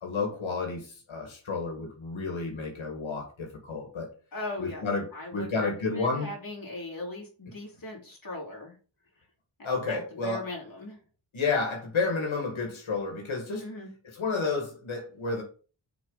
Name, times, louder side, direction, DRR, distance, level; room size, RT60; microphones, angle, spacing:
voice 1, 0.0-4.1 4.6-6.3 9.6-10.5 11.3-13.7 14.1-15.4, left 4 dB, 85° left, 1 dB, 1.9 m, -31 dB
voice 2, 4.3-4.8 5.1-8.8 9.6-11.0 13.6-13.9, left 1 dB, 45° left, -1 dB, 2.6 m, -38 dB
6.4 x 5.0 x 4.0 m, 0.37 s
wide cardioid pair, 130°, 46 cm